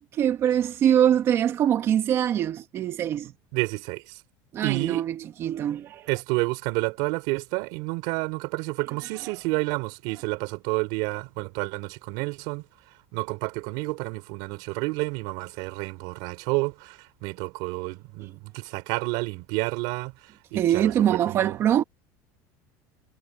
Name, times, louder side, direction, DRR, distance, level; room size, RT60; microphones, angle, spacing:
voice 1, 0.1-3.3 4.5-6.1 20.5-21.8, right 10 dB, 30° right, 2.2 m, -23 dB
voice 2, 3.5-4.2 4.6-5.0 6.1-12.6 13.1-20.1 20.5-21.5, right 25 dB, 65° right, 4.1 m, -30 dB
cardioid pair, 170°, 8 cm